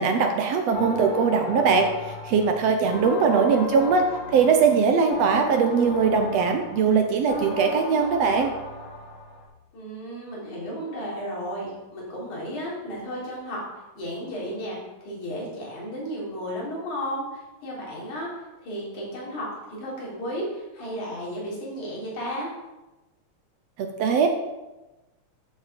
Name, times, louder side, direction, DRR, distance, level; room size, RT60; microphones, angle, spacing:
voice 1, 0.0-8.5 23.8-24.3, right 5 dB, 70° right, 4 dB, 1.9 m, -21 dB
sound 1, 0.7-9.5, left 3 dB, 65° left, 2.7 m, -35 dB
voice 2, 3.3-3.6 9.7-13.6 13.9-14.8 15.0-18.3 18.6-19.5 19.8-22.5, equal, 90° left, -5 dB, 5.1 m, -33 dB
13.0 x 7.0 x 5.2 m, 1.1 s
omnidirectional pair, 3.3 m